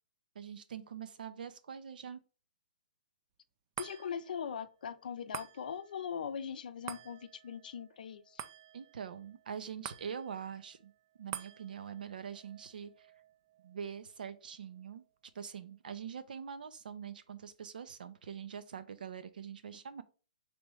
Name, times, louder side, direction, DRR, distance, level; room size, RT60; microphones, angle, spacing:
voice 1, 0.3-2.2 8.7-10.9 11.2-13.1 13.6-15.0 15.3-20.0, right 7 dB, 75° right, 0.6 m, -44 dB
voice 2, 3.8-8.4, left 7 dB, 70° left, 0.5 m, -41 dB
sound 1, 3.8-16.3 16.8-16.9, right 10 dB, 30° right, 0.3 m, -50 dB
3.3 x 3.0 x 4.7 m
hypercardioid pair, 165°, 5 cm